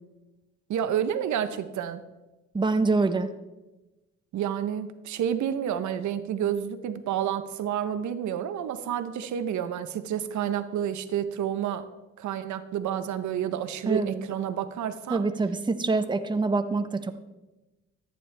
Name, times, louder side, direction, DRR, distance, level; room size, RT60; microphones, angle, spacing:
voice 1, 0.7-2.0 4.3-11.9 12.2-15.2, right 9 dB, 70° right, 11 dB, 0.8 m, -29 dB
voice 2, 2.5-3.3 13.8-14.2 15.1-17.1, right 3 dB, 15° right, 8 dB, 0.7 m, -25 dB
13.5 x 9.2 x 3.3 m, 1.1 s
cardioid pair, 90°, 30 cm